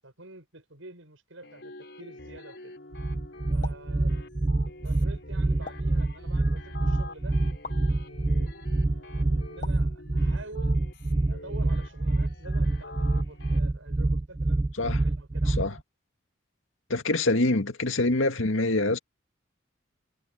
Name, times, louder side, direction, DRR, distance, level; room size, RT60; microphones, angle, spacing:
voice 1, 0.0-2.8 3.5-4.6 4.8-7.4 7.9-10.8 11.3-15.8, right 2 dB, 80° right, 7.6 m, -48 dB
sound 1, 1.4-13.6, left 2 dB, 55° left, 5.1 m, -46 dB
sound 2, 2.9-15.8, right 2 dB, 20° right, 0.3 m, -26 dB
sound 3, 3.6-3.9 5.7-6.0 7.6-7.9 9.6-9.9, left 4 dB, 40° left, 0.9 m, -41 dB
voice 2, 15.5-15.8 16.9-19.0, left 2 dB, 85° left, 2.0 m, -25 dB
head